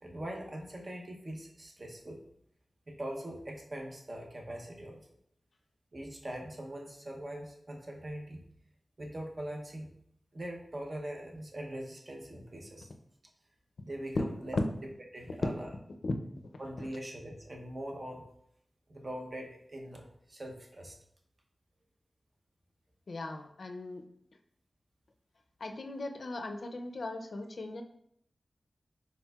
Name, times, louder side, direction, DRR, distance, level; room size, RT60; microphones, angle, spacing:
voice 1, 0.0-2.2 2.9-5.1 5.9-8.4 9.0-9.9 10.3-12.9 13.8-14.2 14.5-14.6 15.1-15.7 16.6-18.2 18.9-21.0, right 1 dB, 45° right, 1 dB, 0.7 m, -42 dB
voice 2, 23.1-24.0 25.6-27.8, left 2 dB, 75° left, 5 dB, 0.4 m, -38 dB
4.4 x 3.6 x 2.3 m, 0.72 s
wide cardioid pair, 75°, 0 cm